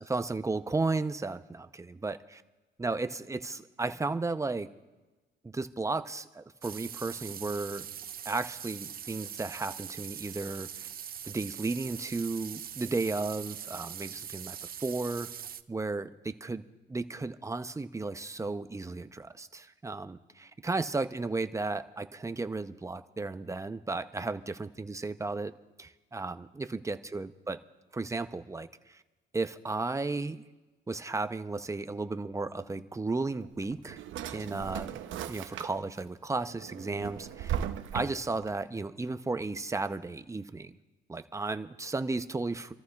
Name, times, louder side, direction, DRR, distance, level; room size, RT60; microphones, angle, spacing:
voice 1, 0.0-2.4 2.8-4.7 5.4-7.9 8.2-10.9 11.2-15.3 15.7-25.5 25.8-27.6 27.9-29.0 29.3-30.4 30.9-34.0 34.3-34.9 35.3-37.7 37.9-40.7 41.1-42.7, right 3 dB, 15° right, 10 dB, 0.7 m, -34 dB
sound 1, 6.6-15.6, right 9 dB, 50° right, 0.6 m, -42 dB
Drawer open or close, 33.4-36.0 36.4-38.5, right 10 dB, 80° right, 0.8 m, -37 dB
30.0 x 14.0 x 2.4 m, 1.2 s
cardioid pair, 90°, 20 cm